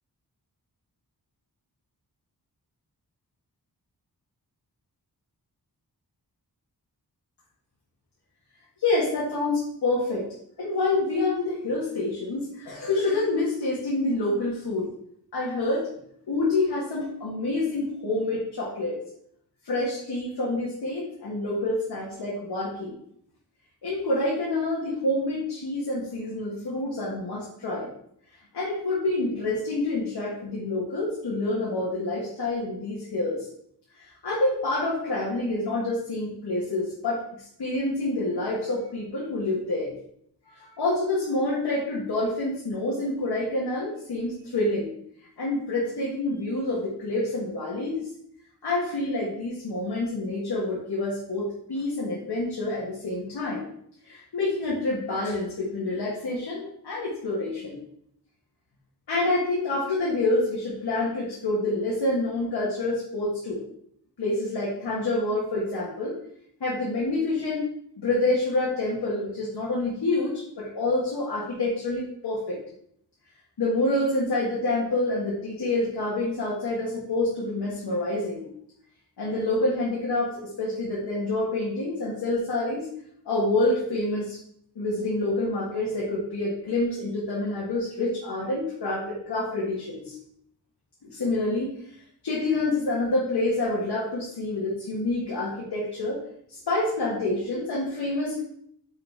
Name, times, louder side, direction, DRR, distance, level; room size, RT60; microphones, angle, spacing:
voice 1, 8.8-10.3 10.6-14.9 15.3-15.9 16.3-19.0 19.6-23.0 23.8-27.9 28.5-33.5 34.0-37.2 37.6-39.9 40.5-44.9 45.4-48.1 48.6-53.7 54.0-57.8 59.1-63.6 64.2-66.1 66.6-67.7 68.0-72.6 73.6-78.5 79.2-82.9 83.3-84.4 84.8-90.2 91.0-91.7 92.2-96.2 96.5-98.4, left 2 dB, 85° left, -6 dB, 1.9 m, -27 dB
6.5 x 4.2 x 4.8 m, 0.69 s
wide cardioid pair, 130°, 38 cm